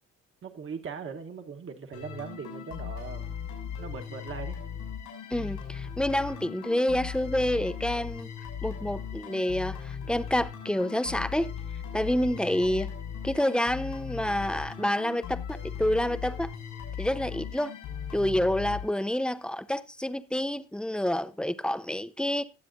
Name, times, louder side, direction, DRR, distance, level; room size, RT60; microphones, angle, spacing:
voice 1, 0.4-3.4 3.8-4.6, right 6 dB, 45° right, 1.2 m, -40 dB
sound 1, 1.9-19.5, left 8 dB, 85° left, 6.3 m, -38 dB
voice 2, 5.3-8.3 8.6-11.5 11.9-12.9 13.2-16.5 17.0-17.7 18.1-22.4, left 1 dB, 5° left, 0.6 m, -28 dB
19.5 x 7.5 x 2.6 m
cardioid pair, 90°, 30 cm